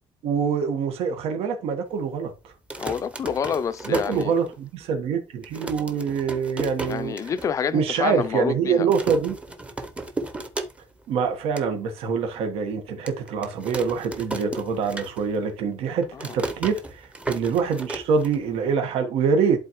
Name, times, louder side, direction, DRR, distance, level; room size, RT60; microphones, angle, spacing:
voice 1, 0.2-2.5 3.9-7.1 7.7-9.4 11.1-19.6, right 6 dB, 80° right, 1.4 m, -25 dB
sound 1, 2.5-4.8 5.1-5.2 5.4-7.5 7.9-8.0 8.2-8.5 8.9-11.1 11.3-11.7 12.2-12.3 13.1-15.5 15.8-18.7, right 2 dB, 10° right, 0.7 m, -35 dB
voice 2, 2.8-4.3 6.9-8.9 16.2-16.3, left 7 dB, 30° left, 0.4 m, -28 dB
11.5 x 3.9 x 3.0 m
cardioid pair, 165°, 10 cm